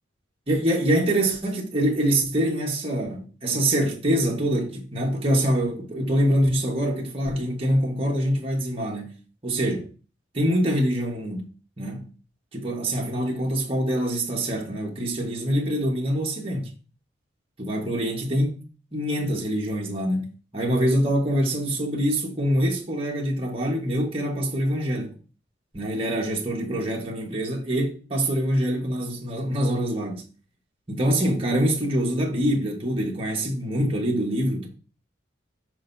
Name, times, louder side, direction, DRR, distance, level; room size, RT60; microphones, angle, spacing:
voice 1, 0.5-9.1 9.4-9.9 10.3-11.5 11.8-12.1 12.5-16.7 17.6-18.6 18.9-25.1 25.7-30.2 30.9-34.7, equal, 30° right, 1.3 m, -25 dB
6.5 x 5.4 x 2.7 m
head